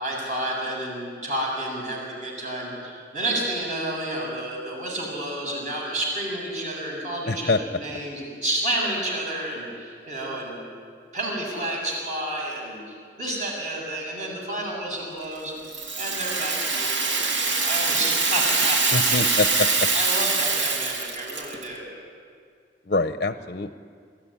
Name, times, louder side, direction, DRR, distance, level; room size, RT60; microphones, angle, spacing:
voice 1, 0.0-10.6 11.1-19.4 19.9-21.9, right 1 dB, 40° right, -2 dB, 7.3 m, -30 dB
voice 2, 7.3-7.6 18.9-19.7 22.9-23.7, left 3 dB, 50° left, 10 dB, 0.7 m, -24 dB
Rattle (instrument), 15.7-21.7, right 4 dB, 85° right, 2.7 m, -24 dB
24.0 x 14.5 x 9.9 m, 2.1 s
head